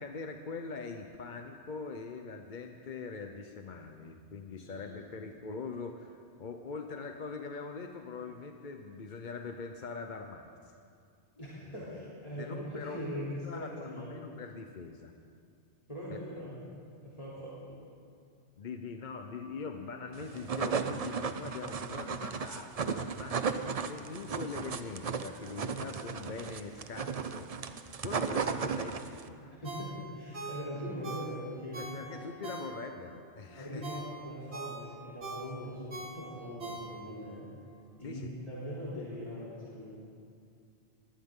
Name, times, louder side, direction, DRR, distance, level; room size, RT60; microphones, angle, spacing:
voice 1, 0.0-10.7 12.4-15.1 16.1-16.2 18.6-27.7 28.0-29.5 31.8-33.8 38.0-38.3, left 4 dB, 45° left, 5 dB, 0.9 m, -42 dB
voice 2, 4.6-5.2 11.4-14.2 15.9-16.6 17.0-17.8 29.5-32.5 33.6-37.5 38.0-39.9, equal, 30° left, -9 dB, 3.4 m, -41 dB
sound 1, 20.2-29.3, right 5 dB, 40° right, 0.6 m, -35 dB
Ringtone, 29.6-33.1 33.5-37.3 37.7-37.8, right 2 dB, 65° right, 2.0 m, -43 dB
21.0 x 17.5 x 3.8 m, 2.3 s
omnidirectional pair, 1.2 m